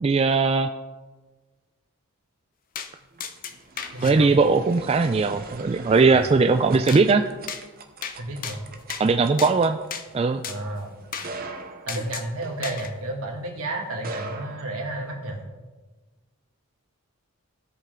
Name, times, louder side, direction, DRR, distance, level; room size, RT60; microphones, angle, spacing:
voice 1, 0.0-0.7 4.0-7.2 9.0-9.8 10.1-10.4, right 4 dB, 25° right, 7 dB, 0.3 m, -19 dB
sound 1, 2.8-2.9 3.2-4.2 6.9-7.0 7.5-7.6 8.0-8.2 8.4-9.1 9.4-9.5 9.9-10.1 10.4-10.6 11.1-11.3 11.9-12.3 12.6-12.9, left 7 dB, 40° left, 0.6 m, -34 dB
sound 2, 2.9-13.3 13.9-15.4, right 3 dB, 40° right, 0.8 m, -42 dB
voice 2, 3.9-4.3 8.2-8.6 10.5-10.9 11.9-15.4, right 2 dB, 75° right, 0 dB, 2.1 m, -31 dB
16.0 x 5.4 x 3.8 m, 1.3 s
head